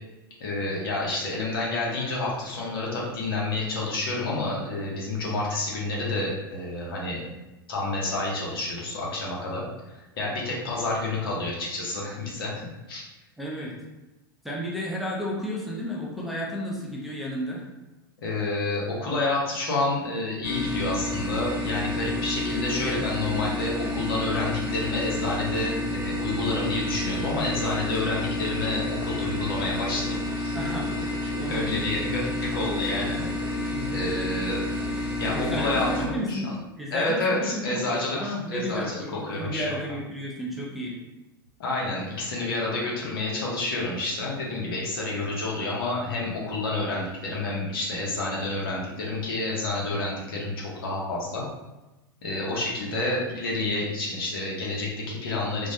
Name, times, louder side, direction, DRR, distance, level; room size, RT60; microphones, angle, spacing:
voice 1, 0.4-7.2 7.7-9.6 9.9-12.6 12.9-13.0 18.2-30.6 31.2-33.2 33.9-34.6 35.2-36.4 36.9-39.8 41.6-51.4 52.2-55.7, left 2 dB, 70° left, -4 dB, 0.8 m, -29 dB
voice 2, 13.4-13.7 14.4-17.6 30.5-31.6 33.7-34.1 35.3-36.5 36.8-41.0, equal, ahead, -5 dB, 0.6 m, -32 dB
sound 1, 20.4-36.1, left 2 dB, 40° left, 0.6 m, -30 dB
2.2 x 2.0 x 2.7 m, 1.0 s
hypercardioid pair, 90°, 13 cm